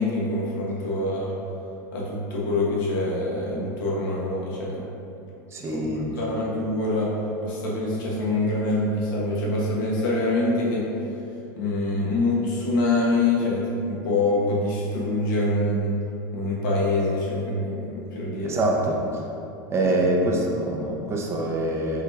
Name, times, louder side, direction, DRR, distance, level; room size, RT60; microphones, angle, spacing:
voice 1, 0.0-1.3 1.9-4.8 5.7-5.8 6.2-7.1 7.4-10.8 11.6-16.0 16.3-18.6 19.8-20.0, left 2 dB, 75° left, -5 dB, 1.1 m, -25 dB
voice 2, 5.5-6.1 18.4-19.2 19.7-22.0, right 1 dB, 25° right, -1 dB, 0.6 m, -25 dB
4.7 x 3.3 x 2.4 m, 2.8 s
supercardioid pair, 115°, 11 cm